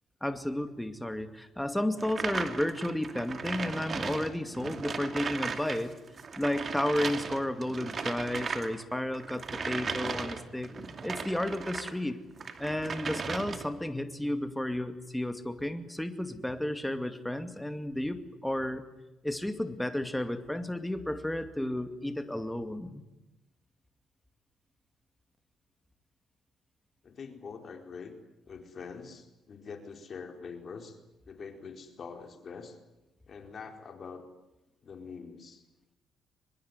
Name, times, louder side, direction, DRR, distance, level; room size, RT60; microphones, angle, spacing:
voice 1, 0.2-5.9 6.4-10.7 11.0-12.2 12.6-18.8 19.2-23.0, left 1 dB, 5° left, 8 dB, 2.4 m, -32 dB
sound 1, 2.0-12.0 12.4-13.8, right 5 dB, 45° right, 2.5 m, -37 dB
voice 2, 27.0-28.1 28.5-31.0 31.2-32.8 33.3-34.2 34.8-35.6, left 5 dB, 50° left, 6 dB, 4.4 m, -44 dB
24.0 x 21.5 x 9.8 m, 0.97 s
cardioid pair, 90°, 0 cm